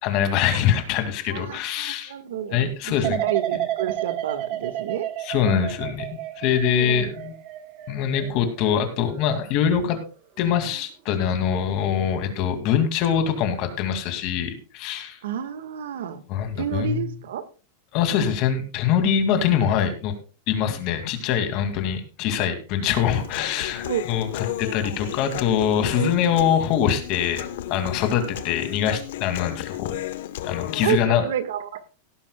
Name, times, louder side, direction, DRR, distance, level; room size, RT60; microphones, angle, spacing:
voice 1, 0.0-2.1 2.5-3.2 3.6-3.7 5.2-6.1 6.4-7.3 7.9-10.0 10.4-15.2 16.3-17.0 17.9-20.1 20.5-29.9 30.4-31.2, left 8 dB, 40° left, 7 dB, 2.3 m, -23 dB
voice 2, 1.3-2.7 3.0-5.1 6.6-7.1 15.2-16.2 16.5-17.4 23.9-24.6 25.9-26.1 30.8-31.8, right 9 dB, 85° right, 11 dB, 1.6 m, -30 dB
sound 1, 3.0-10.0 10.4-10.8, right 13 dB, 35° right, 1.1 m, -32 dB
Human voice, 22.9-30.9, left 12 dB, 65° left, 1.1 m, -34 dB
17.5 x 10.5 x 2.3 m, 0.35 s
supercardioid pair, 170°, 0 cm